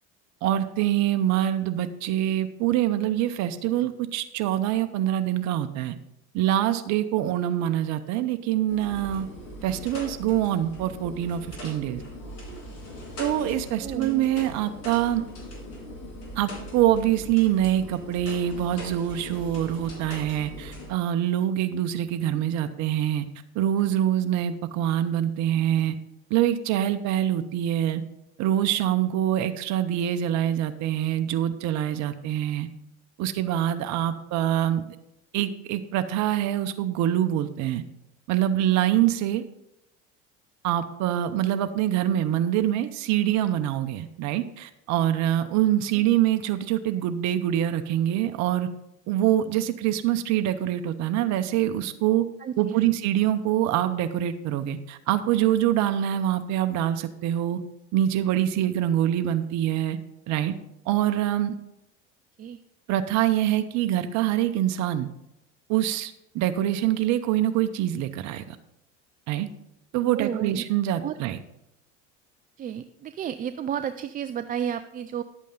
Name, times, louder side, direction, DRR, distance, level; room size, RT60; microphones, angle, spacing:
voice 1, 0.4-5.9 6.3-9.3 9.6-12.0 13.2-15.2 16.4-23.3 23.5-26.0 26.3-28.0 28.4-32.7 33.2-35.0 35.3-37.8 38.3-39.4 40.6-48.7 49.1-52.3 52.6-57.6 57.9-60.0 60.3-60.5 60.9-61.5 62.9-65.1 65.7-68.6 69.3-69.5 69.9-71.4, right 12 dB, 50° right, 9 dB, 0.7 m, -25 dB
sound 1, 8.7-20.9, left 1 dB, 45° left, 4.3 m, -40 dB
voice 2, 13.8-14.3 52.4-53.0 62.4-62.6 70.1-70.6 71.0-71.1 72.6-75.2, right 9 dB, 25° right, 10 dB, 0.4 m, -32 dB
10.5 x 8.3 x 3.8 m, 0.86 s
hypercardioid pair, 75°, 36 cm